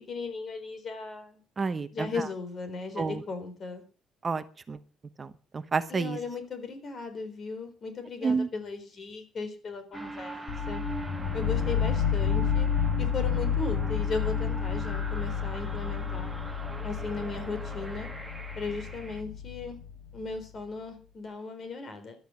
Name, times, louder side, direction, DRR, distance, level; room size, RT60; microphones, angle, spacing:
voice 1, 0.0-1.4 1.9-3.8 5.9-10.8 11.3-12.7 13.0-16.3 16.8-18.1 18.6-19.8 20.1-22.2, left 4 dB, 35° left, 9 dB, 3.9 m, -37 dB
voice 2, 1.6-2.1 3.0-3.2 4.2-4.8 5.2-5.3 5.5-6.2 8.2-8.5, right 4 dB, 25° right, 11 dB, 1.0 m, -29 dB
sound 1, 9.9-19.2, right 2 dB, 5° right, 1.9 m, -40 dB
sound 2, 10.5-20.3, left 7 dB, 55° left, 5.3 m, -30 dB
14.5 x 12.0 x 6.4 m, 0.38 s
cardioid pair, 150°, 0 cm